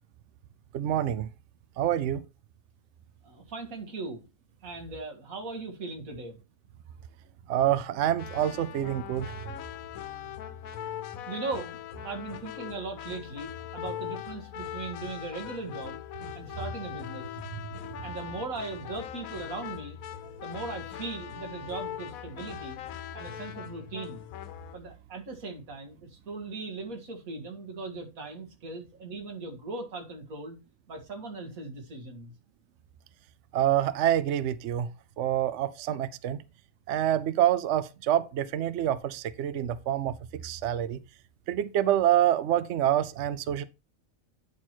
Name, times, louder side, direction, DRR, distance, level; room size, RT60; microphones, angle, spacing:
voice 1, 0.7-1.3 1.8-2.2 7.5-9.4 33.5-34.9 35.2-36.4 36.9-41.0 41.5-43.6, right 11 dB, 65° right, 0.8 m, -27 dB
voice 2, 3.2-4.3 4.6-6.4 11.3-11.8 12.0-16.0 16.3-17.3 18.0-20.0 20.4-22.8 23.1-24.2 24.7-30.6 30.9-32.3, right 3 dB, 90° right, 2.1 m, -38 dB
sound 1, 8.2-24.8, left 10 dB, 85° left, 1.1 m, -40 dB
9.5 x 4.4 x 4.4 m
omnidirectional pair, 1.4 m